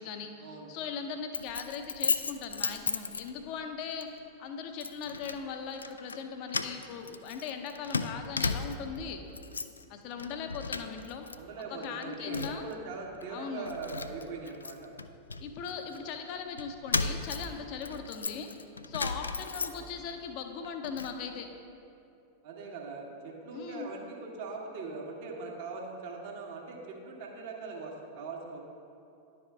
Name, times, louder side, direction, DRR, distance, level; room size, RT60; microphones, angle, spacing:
voice 1, 0.0-9.2 9.9-11.3 11.7-12.6 13.3-13.7 15.4-18.5 18.9-21.5 23.5-23.9, left 6 dB, 40° left, 6 dB, 0.7 m, -39 dB
Keys jangling, 1.3-3.6 4.0-4.2 4.8-5.4 5.7-6.2 6.5-9.0 9.3-9.8 10.2-11.4 11.6-12.7 13.2-13.3 13.7-16.0 16.6-20.1 20.5-21.2, left 4 dB, 75° left, 0.3 m, -35 dB
voice 2, 11.3-14.9 19.6-19.8 22.4-28.6, right 4 dB, 50° right, 0 dB, 1.3 m, -41 dB
11.0 x 4.9 x 3.5 m, 2.7 s
figure-of-eight pair, 90°, 0 cm